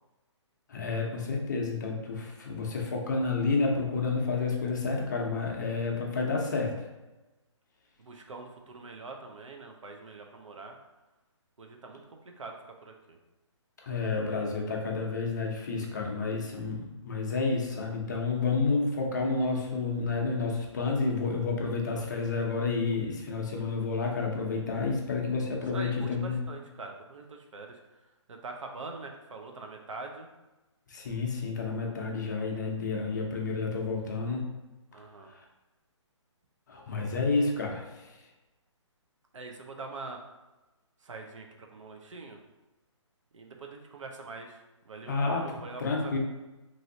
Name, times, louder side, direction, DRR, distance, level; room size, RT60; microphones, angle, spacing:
voice 1, 0.7-6.7 13.8-26.4 30.9-34.5 36.7-37.8 45.1-45.5 45.8-46.2, left 4 dB, 35° left, -1 dB, 0.5 m, -30 dB
voice 2, 8.0-10.8 11.6-13.2 25.7-27.8 28.3-30.3 32.4-32.7 34.9-35.3 39.3-40.2 41.0-42.4 43.3-46.2, right 3 dB, 85° right, 3 dB, 0.6 m, -44 dB
3.1 x 2.6 x 2.6 m, 1.1 s
hypercardioid pair, 170°, 16 cm